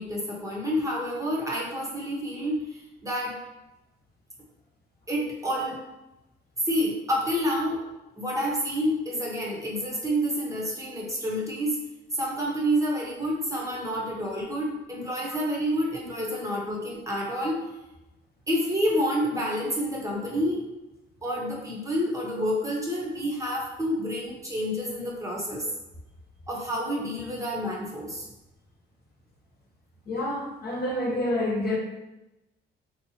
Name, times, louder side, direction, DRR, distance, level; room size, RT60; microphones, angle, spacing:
voice 1, 0.0-3.4 5.1-5.8 6.6-7.8 8.2-11.8 12.1-17.6 18.5-20.6 21.2-25.7 26.5-28.3, equal, 15° right, -4 dB, 0.9 m, -28 dB
voice 2, 30.1-31.8, left 1 dB, 50° left, -2 dB, 1.0 m, -28 dB
3.4 x 2.8 x 2.8 m, 0.98 s
cardioid pair, 90°, 20 cm